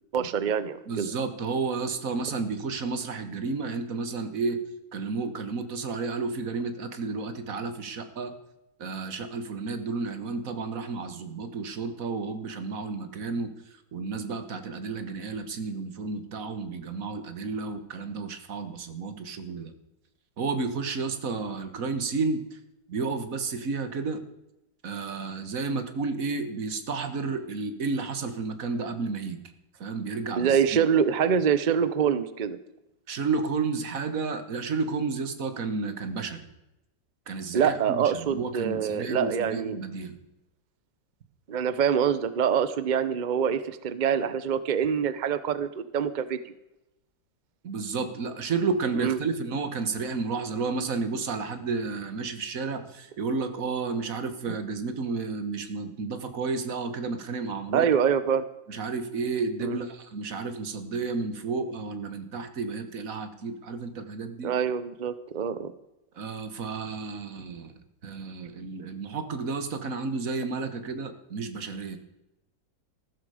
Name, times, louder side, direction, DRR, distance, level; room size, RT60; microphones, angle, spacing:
voice 1, 0.1-1.1 30.4-32.6 37.5-39.8 41.5-46.5 49.0-49.2 57.7-58.5 59.6-59.8 64.4-65.7, right 7 dB, 90° right, 14 dB, 0.4 m, -25 dB
voice 2, 0.9-4.6 4.9-8.3 8.8-19.7 20.4-22.6 22.9-24.2 24.8-29.4 29.8-30.6 33.1-36.4 37.3-40.2 47.6-57.9 58.7-64.5 66.1-67.7 68.0-72.0, right 4 dB, 50° right, 9 dB, 1.7 m, -31 dB
14.5 x 13.0 x 4.9 m, 0.92 s
omnidirectional pair, 2.0 m